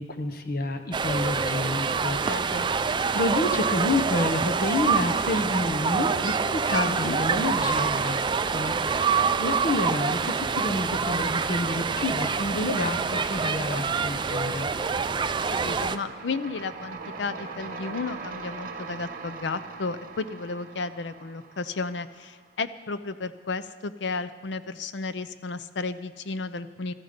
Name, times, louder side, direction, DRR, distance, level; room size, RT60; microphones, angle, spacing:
voice 1, 0.0-2.6 3.1-14.7, left 2 dB, 55° left, 6 dB, 1.0 m, -29 dB
sound 1, 0.9-16.0, right 5 dB, 25° right, 0.4 m, -26 dB
voice 2, 2.0-2.7 6.9-7.2 15.5-26.9, left 3 dB, 70° left, 13 dB, 0.6 m, -33 dB
sound 2, 8.2-22.6, right 4 dB, 50° right, 1.1 m, -43 dB
14.5 x 13.5 x 5.2 m, 1.6 s
head